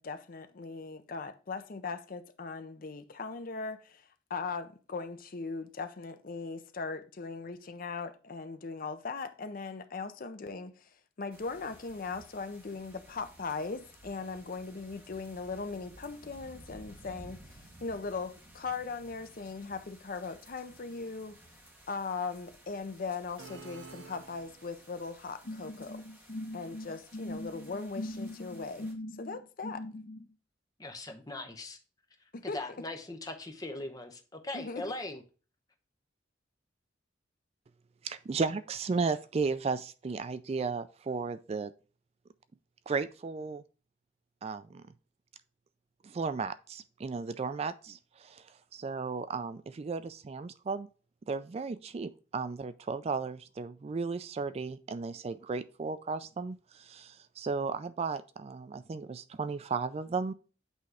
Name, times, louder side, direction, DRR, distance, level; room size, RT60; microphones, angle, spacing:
voice 1, 0.0-10.9 11.2-21.4 21.9-26.0 26.5-28.9 29.2-29.8 32.3-32.6 34.5-34.8, left 4 dB, 50° left, 0.6 m, -39 dB
sound 1, 11.3-28.9, right 1 dB, 10° right, 1.5 m, -56 dB
sound 2, 23.4-25.0, right 4 dB, 75° right, 0.7 m, -50 dB
sound 3, 25.4-30.2, left 1 dB, 70° left, 1.0 m, -41 dB
voice 2, 30.8-31.8 32.4-35.2, left 2 dB, 20° left, 1.0 m, -40 dB
voice 3, 38.0-41.7 42.9-43.6 44.4-44.8 46.0-50.9 51.3-60.3, right 4 dB, 35° right, 0.3 m, -35 dB
8.1 x 3.1 x 4.8 m
head